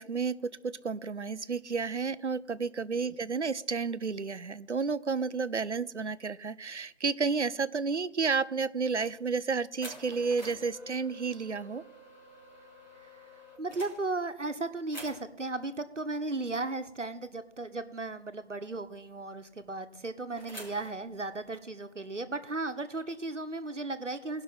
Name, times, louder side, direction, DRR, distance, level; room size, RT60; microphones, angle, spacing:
voice 1, 0.0-11.8, right 5 dB, 70° right, 17 dB, 0.6 m, -31 dB
sound 1, 8.8-9.3 9.8-14.5 14.9-15.5 17.5-17.8 18.1-18.2 18.6-19.7 20.4-21.6, equal, 40° left, 3.2 m, -49 dB
voice 2, 13.0-24.4, right 2 dB, 85° right, 10 dB, 1.1 m, -36 dB
17.5 x 5.8 x 5.7 m, 0.89 s
figure-of-eight pair, 180°, 36 cm